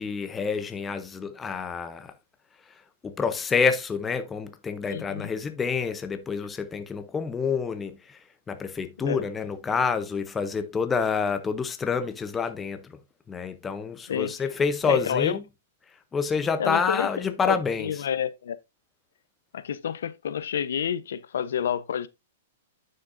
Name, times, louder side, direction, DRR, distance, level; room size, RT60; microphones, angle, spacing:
voice 1, 0.0-2.1 3.0-8.2 8.5-13.0 13.3-15.4 16.1-17.9, left 5 dB, 10° left, 0.7 m, -28 dB
voice 2, 4.9-5.3 9.0-9.2 14.1-14.4 14.8-15.4 16.6-17.1 17.4-18.6 19.5-22.1, left 8 dB, 75° left, 0.8 m, -29 dB
10.0 x 6.6 x 2.5 m
hypercardioid pair, 165°, 0 cm